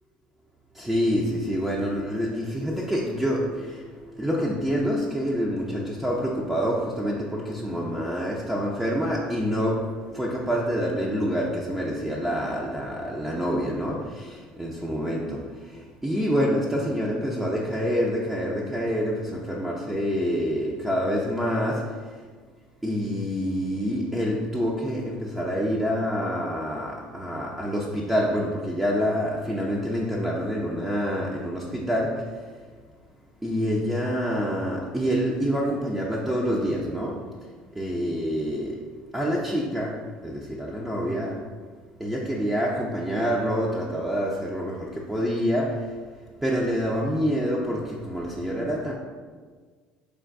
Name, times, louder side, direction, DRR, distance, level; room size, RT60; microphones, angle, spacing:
voice 1, 0.7-22.2 22.8-32.6 33.4-38.8 39.1-41.4 42.0-46.0 46.4-48.9, equal, 5° right, -4 dB, 0.5 m, -27 dB
3.7 x 3.4 x 2.5 m, 1.5 s
supercardioid pair, 80°, 4 cm